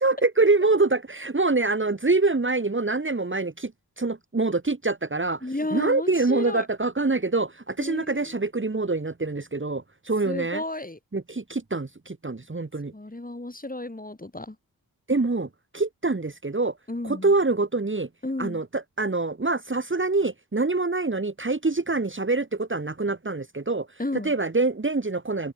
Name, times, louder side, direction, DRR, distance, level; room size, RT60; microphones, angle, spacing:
voice 1, 0.0-3.7 4.0-5.4 5.7-10.6 11.1-12.9 15.1-16.7 17.0-18.1 18.4-23.9 24.2-25.5, right 3 dB, 30° right, 2.4 m, -25 dB
voice 2, 5.4-6.7 7.8-8.4 10.2-11.0 12.9-14.6 16.9-17.3 18.2-18.6 24.0-24.3, left 2 dB, 20° left, 8.0 m, -32 dB
open air
wide cardioid pair, 85°, 39 cm